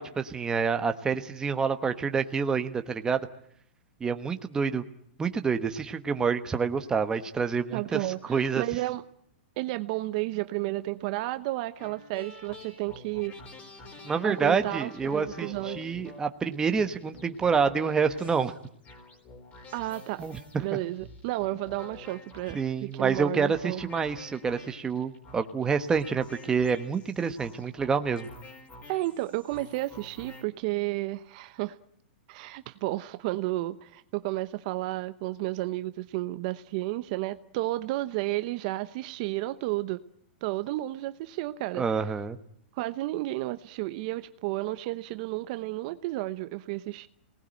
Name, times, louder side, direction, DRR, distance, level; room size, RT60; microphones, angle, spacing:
voice 1, 0.0-3.3 4.0-4.8 5.2-8.6 14.0-18.5 20.2-20.6 22.5-28.3 41.8-42.4, right 5 dB, 10° right, 8 dB, 1.2 m, -28 dB
voice 2, 7.7-9.0 9.6-13.4 14.2-15.9 19.7-20.3 20.6-23.8 28.9-31.8 32.3-40.0 40.4-42.0 42.7-47.1, right 18 dB, 45° right, 13 dB, 0.9 m, -32 dB
sound 1, 11.8-30.4, left 2 dB, 25° left, 4.5 m, -48 dB
27.0 x 19.0 x 9.0 m, 0.71 s
hypercardioid pair, 150°, 6 cm